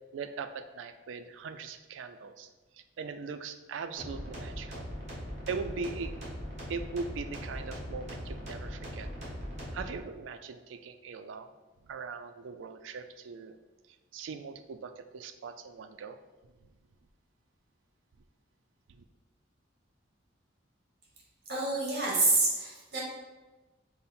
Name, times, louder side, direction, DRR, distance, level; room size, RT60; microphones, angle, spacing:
voice 1, 0.1-2.5 3.0-4.9 5.5-6.1 6.7-9.1 9.7-11.5 11.9-13.6 14.1-16.2 18.9-19.0, right 5 dB, 90° right, 9 dB, 0.3 m, -40 dB
sound 1, 4.0-9.9, equal, 40° right, 1.3 m, -40 dB
voice 2, 21.5-23.0, right 2 dB, 55° right, -3 dB, 1.2 m, -27 dB
5.4 x 2.1 x 4.2 m, 1.2 s
head